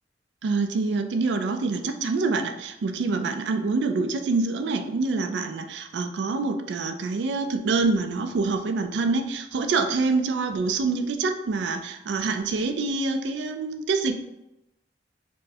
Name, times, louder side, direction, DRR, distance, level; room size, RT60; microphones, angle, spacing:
voice 1, 0.4-14.2, right 3 dB, 80° right, 7 dB, 0.4 m, -26 dB
4.4 x 2.1 x 2.7 m, 0.90 s
head